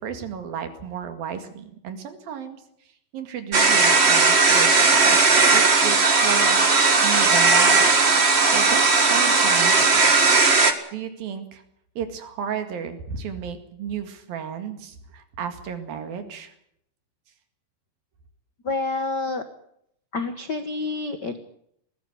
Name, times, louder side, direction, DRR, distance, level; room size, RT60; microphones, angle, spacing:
voice 1, 0.0-2.6 3.1-6.6 7.0-7.9 8.2-10.0 10.9-11.6 12.0-16.5, right 8 dB, 85° right, 8 dB, 3.9 m, -33 dB
sound 1, 3.5-10.7, right 4 dB, 55° right, 0.6 m, -17 dB
voice 2, 18.6-19.4 20.1-21.4, left 3 dB, 80° left, 9 dB, 0.9 m, -28 dB
20.5 x 14.5 x 9.6 m, 0.73 s
omnidirectional pair, 4.0 m